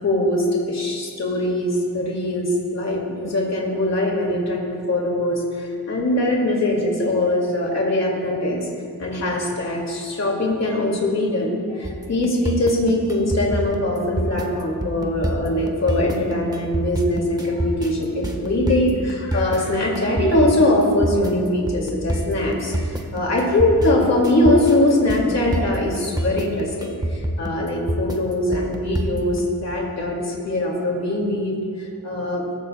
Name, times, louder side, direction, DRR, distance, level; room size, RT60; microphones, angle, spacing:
voice 1, 0.0-8.6 9.0-32.6, left 1 dB, 50° left, -2 dB, 2.2 m, -22 dB
sound 1, 11.8-29.4, right 1 dB, 10° right, 1.2 m, -26 dB
20.5 x 15.0 x 2.2 m, 2.3 s
wide cardioid pair, 120°, 36 cm